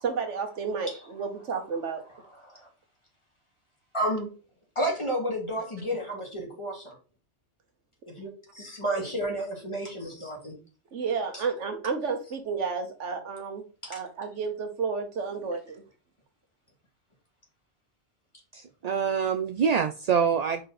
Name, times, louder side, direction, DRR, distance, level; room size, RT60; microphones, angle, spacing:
voice 1, 0.0-2.0 10.9-13.6 13.9-15.8, right 5 dB, 90° right, 5 dB, 1.5 m, -31 dB
voice 2, 3.9-4.3 4.8-7.0 8.1-10.5 13.8-14.0, right 1 dB, 25° left, -2 dB, 2.4 m, -31 dB
voice 3, 18.5-20.6, right 7 dB, 55° right, 7 dB, 0.4 m, -25 dB
5.0 x 4.6 x 4.2 m, 0.35 s
omnidirectional pair, 1.2 m